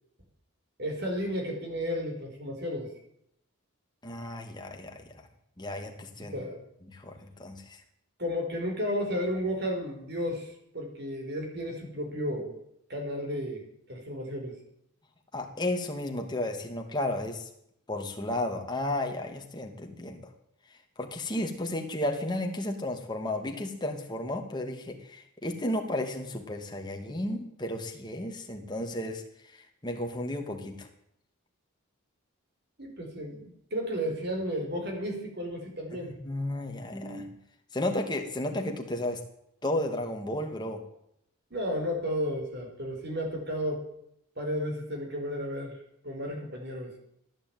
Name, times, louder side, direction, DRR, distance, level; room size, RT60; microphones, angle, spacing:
voice 1, 0.8-2.9 6.3-6.6 8.2-12.5 12.9-14.6 32.8-36.1 41.5-43.8 44.4-45.8 46.0-47.0, equal, 50° right, 2 dB, 4.9 m, -33 dB
voice 2, 4.0-5.1 5.6-6.3 6.9-7.8 15.3-17.5 17.9-20.2 21.0-30.9 35.9-37.4 37.7-39.2 39.6-40.8, left 1 dB, 20° left, 3 dB, 2.4 m, -33 dB
15.5 x 10.5 x 9.1 m, 0.74 s
head